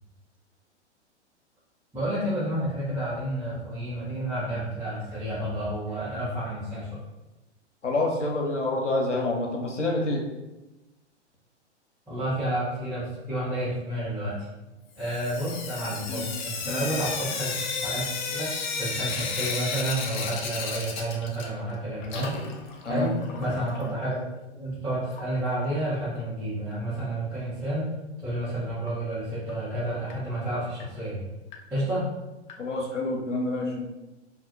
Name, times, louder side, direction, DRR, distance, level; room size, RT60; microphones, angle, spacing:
voice 1, 1.9-6.9 12.1-14.4 14.9-18.5 18.8-22.4 22.9-23.1 23.4-24.2 24.5-27.9 28.2-31.2 31.7-32.0, right 1 dB, 5° right, -13 dB, 1.1 m, -30 dB
voice 2, 7.8-10.2 16.1-16.3 16.6-16.9 22.8-23.1 32.6-33.8, left 2 dB, 90° left, 0 dB, 0.8 m, -27 dB
Sink (filling or washing) / Drip, 15.0-21.7 22.0-23.9 25.1-25.2 25.5-25.6 25.9-26.0 28.9-29.0 29.5-29.6 30.1-30.2 30.8-30.9 31.5-31.6 32.5-32.6, left 5 dB, 45° left, 0.5 m, -33 dB
2.7 x 2.4 x 2.6 m, 1.0 s
figure-of-eight pair, 110°, 35 cm